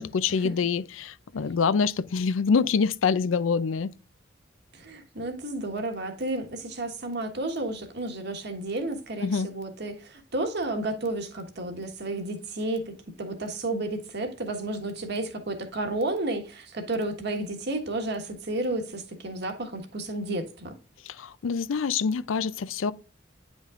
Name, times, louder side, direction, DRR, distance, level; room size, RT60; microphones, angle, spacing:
voice 1, 0.0-3.9 9.2-9.5 21.0-22.9, left 5 dB, 85° left, 0.5 m, -26 dB
voice 2, 4.7-20.7, right 2 dB, 60° right, 1.4 m, -32 dB
9.9 x 5.2 x 2.5 m
head